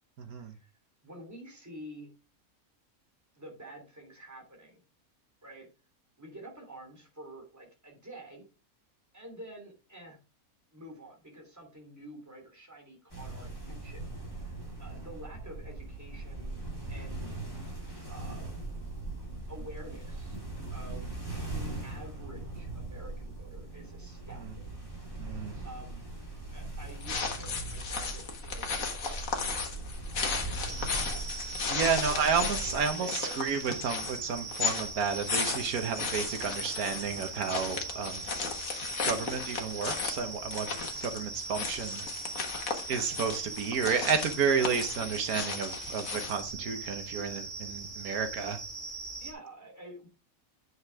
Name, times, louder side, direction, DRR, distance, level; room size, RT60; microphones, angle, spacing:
voice 1, 0.2-0.5 24.3-24.5 25.2-25.5 31.7-38.2 39.0-40.7 41.0-42.1 42.9-48.6, right 6 dB, 85° right, 7 dB, 1.5 m, -31 dB
voice 2, 1.0-2.1 3.4-4.8 5.4-5.7 6.2-8.5 9.1-10.2 10.7-16.6 16.9-17.4 18.1-18.5 19.5-20.4 20.7-24.7 25.6-26.1 26.5-29.6 30.1-33.4 49.2-50.1, right 1 dB, 10° right, 1 dB, 3.1 m, -49 dB
sound 1, 13.1-32.9, right 2 dB, 15° left, 3.5 m, -40 dB
sound 2, 26.8-46.5, left 5 dB, 70° left, 1.9 m, -36 dB
sound 3, 30.7-49.3, right 3 dB, 55° right, 2.3 m, -41 dB
9.4 x 6.3 x 3.4 m, 0.31 s
omnidirectional pair, 1.5 m